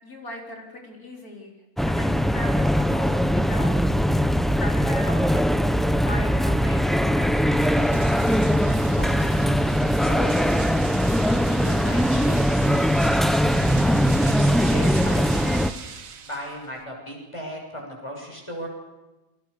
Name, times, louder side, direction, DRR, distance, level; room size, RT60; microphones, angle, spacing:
voice 1, 0.0-1.5 1.9-3.9 4.5-5.3 6.1-7.7 13.1-13.2, left 1 dB, 85° left, 0 dB, 5.0 m, -38 dB
sound 1, 1.8-15.7, equal, ahead, 0.3 m, -21 dB
sound 2, 7.2-16.8, right 6 dB, 65° right, 1.6 m, -40 dB
voice 2, 9.0-9.5 10.0-10.4 11.5-12.7 13.4-15.7 16.2-18.7, equal, 20° left, 1 dB, 6.8 m, -37 dB
28.0 x 23.0 x 6.8 m, 1.1 s
omnidirectional pair, 1.5 m